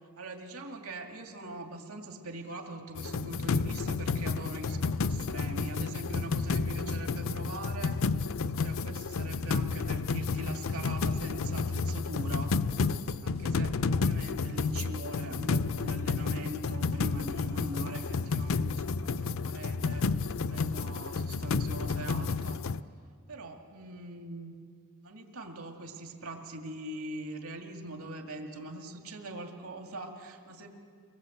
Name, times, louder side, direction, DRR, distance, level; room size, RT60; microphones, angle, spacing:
voice 1, 0.2-8.0 8.4-12.6 13.2-20.1 20.4-22.6 23.3-24.5 25.0-30.7, right 1 dB, 75° right, 3 dB, 2.3 m, -42 dB
sound 1, 2.9-22.8, left 4 dB, 60° left, 0.5 m, -31 dB
24.5 x 20.5 x 7.9 m, 2.2 s
head